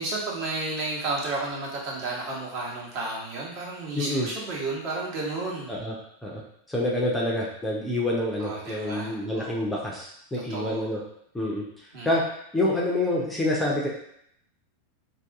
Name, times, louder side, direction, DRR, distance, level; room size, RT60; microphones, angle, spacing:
voice 1, 0.0-5.9 8.4-9.6 10.3-10.9 11.9-12.1, right 2 dB, 45° right, -4 dB, 1.2 m, -32 dB
voice 2, 3.9-4.3 5.7-6.0 6.2-6.4 6.7-11.0 11.3-11.6 12.0-13.9, left 1 dB, 5° left, -4 dB, 0.6 m, -27 dB
2.7 x 2.5 x 3.5 m, 0.72 s
figure-of-eight pair, 90°, 0 cm